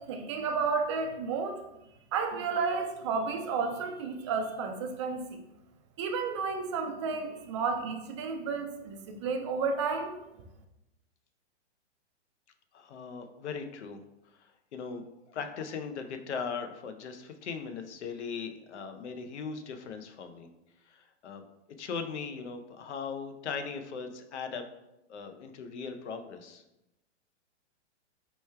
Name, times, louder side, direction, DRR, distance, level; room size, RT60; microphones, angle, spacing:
voice 1, 0.0-1.6 2.1-5.4 6.0-10.2, right 5 dB, 25° right, 5 dB, 0.4 m, -32 dB
voice 2, 12.7-14.0 14.4-20.5 20.9-21.4 21.8-24.6 25.1-26.6, left 5 dB, 75° left, 6 dB, 0.7 m, -39 dB
4.5 x 3.1 x 3.3 m, 0.91 s
hypercardioid pair, 145°, 35 cm